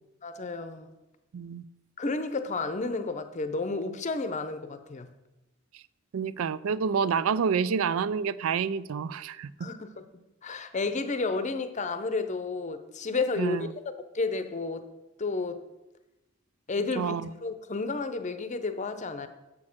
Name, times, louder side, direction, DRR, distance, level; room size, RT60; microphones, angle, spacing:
voice 1, 0.2-0.9 2.0-5.1 9.6-10.0 10.4-13.7 14.1-14.9 15.2-15.7 16.7-19.3, left 3 dB, 35° left, 10 dB, 0.6 m, -31 dB
voice 2, 1.3-1.6 6.1-9.7 13.4-13.7 17.0-17.3, right 6 dB, 85° right, 17 dB, 0.4 m, -28 dB
7.5 x 6.4 x 5.9 m, 0.99 s
head